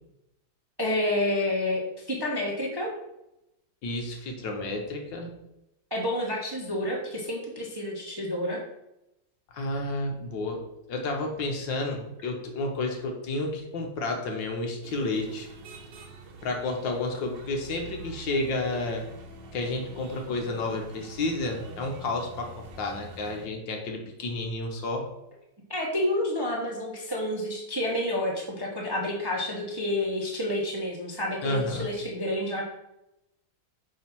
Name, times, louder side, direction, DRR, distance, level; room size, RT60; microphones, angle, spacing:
voice 1, 0.8-2.9 5.9-8.6 25.7-32.6, left 1 dB, 20° right, -2 dB, 0.7 m, -29 dB
voice 2, 3.8-5.3 9.5-10.6 10.9-15.5 16.4-19.0 19.5-25.1 31.4-31.9, left 2 dB, 65° left, 2 dB, 1.7 m, -31 dB
sound 1, 14.8-23.5, right 3 dB, 65° right, 1.5 m, -46 dB
7.4 x 2.9 x 5.9 m, 0.89 s
omnidirectional pair, 2.2 m